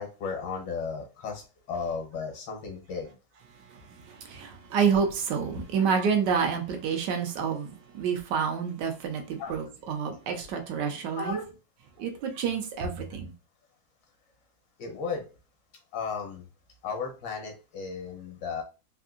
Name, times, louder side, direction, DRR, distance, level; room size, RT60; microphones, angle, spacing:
voice 1, 0.0-1.4 1.7-3.2 9.4-9.5 11.2-11.4 14.8-15.3 15.9-16.4 16.8-18.6, left 5 dB, 80° left, 1.5 m, -34 dB
voice 2, 3.7-11.4 12.0-13.3, right 6 dB, 75° right, 1.2 m, -29 dB
3.6 x 2.5 x 2.4 m
omnidirectional pair, 2.0 m